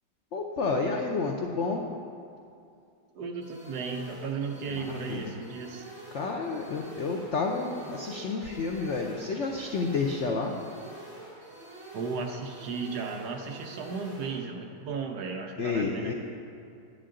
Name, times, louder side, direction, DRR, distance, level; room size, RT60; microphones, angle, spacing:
voice 1, 0.3-1.9 4.7-5.3 6.1-10.5 15.6-16.1, left 4 dB, 90° left, 1 dB, 0.6 m, -30 dB
voice 2, 3.1-5.9 11.9-16.1, right 5 dB, 70° right, 3 dB, 1.1 m, -35 dB
sound 1, 3.4-14.4, right 2 dB, 50° right, 2.1 m, -47 dB
10.5 x 8.6 x 3.8 m, 2.5 s
omnidirectional pair, 2.0 m